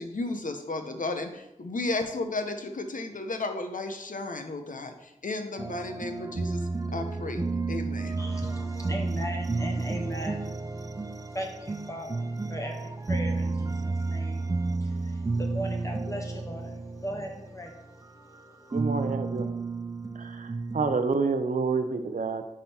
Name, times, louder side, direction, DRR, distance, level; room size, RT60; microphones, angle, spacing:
voice 1, 0.0-8.2, left 2 dB, 80° left, 6 dB, 0.8 m, -34 dB
sound 1, 5.6-18.4 18.7-21.0, right 3 dB, 25° right, 0.4 m, -32 dB
voice 2, 8.2-18.8, equal, 25° left, 0 dB, 0.9 m, -39 dB
voice 3, 18.7-19.6 20.2-22.4, right 4 dB, 75° right, 8 dB, 0.6 m, -28 dB
9.8 x 3.7 x 4.3 m, 0.88 s
wide cardioid pair, 60°, 14 cm